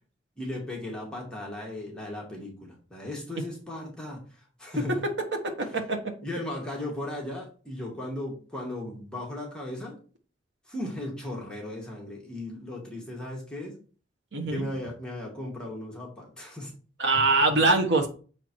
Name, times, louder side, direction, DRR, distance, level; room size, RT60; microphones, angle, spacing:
voice 1, 0.4-5.1 5.6-5.8 6.2-9.9 10.7-13.7 14.5-16.7 17.5-17.7, left 1 dB, 5° left, -3 dB, 2.0 m, -36 dB
voice 2, 5.0-6.0 14.3-14.7 17.0-18.1, right 3 dB, 80° right, 3 dB, 1.4 m, -24 dB
7.1 x 4.6 x 4.6 m, 0.38 s
head